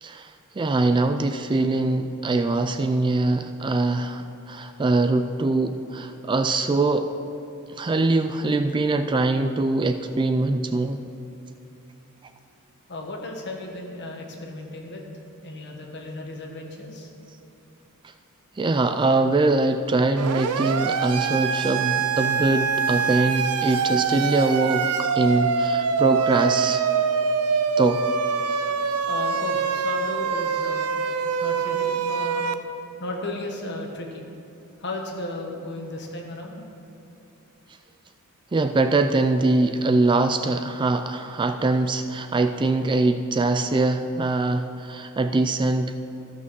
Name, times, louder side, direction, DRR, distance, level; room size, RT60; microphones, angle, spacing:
voice 1, 0.0-7.1 7.7-11.0 18.6-26.8 27.8-28.1 38.5-45.9, right 2 dB, 20° right, 8 dB, 0.3 m, -23 dB
voice 2, 12.9-15.0 15.4-17.1 29.1-30.9 31.4-32.5 33.0-34.2 34.8-36.6, left 2 dB, 50° left, 1 dB, 1.5 m, -34 dB
Siren, 20.2-32.5, right 6 dB, 85° right, 0.6 m, -24 dB
13.5 x 6.0 x 6.2 m, 2.9 s
head